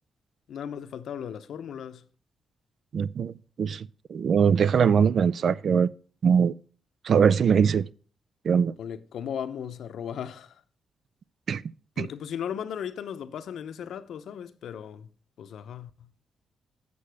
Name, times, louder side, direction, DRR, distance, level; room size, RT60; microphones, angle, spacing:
voice 1, 0.5-2.1 8.8-10.6 12.0-15.1 15.4-16.1, left 8 dB, 75° left, 0.7 m, -36 dB
voice 2, 2.9-5.9 6.2-6.5 7.0-7.9 8.4-8.7 11.5-11.6 12.0-12.1, right 7 dB, 55° right, 0.3 m, -22 dB
8.5 x 6.9 x 4.7 m
cardioid pair, 125°, 0 cm